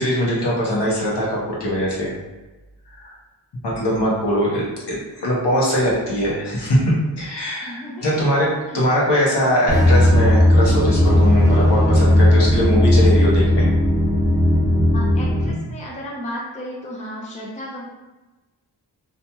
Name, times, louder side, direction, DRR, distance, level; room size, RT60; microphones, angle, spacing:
voice 1, 0.0-2.1 3.0-3.1 3.6-13.7, equal, 65° left, -5 dB, 1.0 m, -21 dB
voice 2, 7.6-8.2 8.7-8.9 14.9-17.9, equal, 15° left, -4 dB, 0.5 m, -34 dB
sound 1, 9.7-15.5, left 1 dB, 10° right, 0.9 m, -15 dB
2.8 x 2.5 x 2.3 m, 1.1 s
wide cardioid pair, 80°, 44 cm